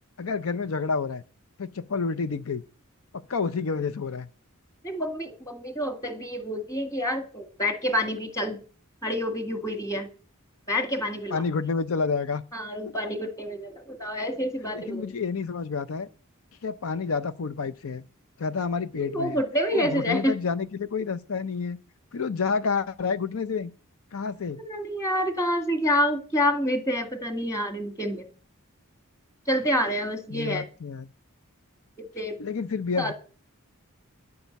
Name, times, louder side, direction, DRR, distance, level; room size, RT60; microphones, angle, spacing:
voice 1, 0.2-1.2 1.6-2.6 3.3-4.3 11.3-12.4 14.7-16.1 16.6-18.0 18.4-19.4 19.7-21.8 22.1-23.7 24.1-24.6 30.3-31.1 32.4-33.1, left 5 dB, 70° left, 0.6 m, -29 dB
voice 2, 4.8-8.6 9.0-10.1 10.7-11.4 12.5-15.0 19.0-20.4 24.6-28.3 29.5-30.7 32.0-32.4 33.0-33.1, equal, 15° left, 2.0 m, -28 dB
11.0 x 8.6 x 8.1 m
head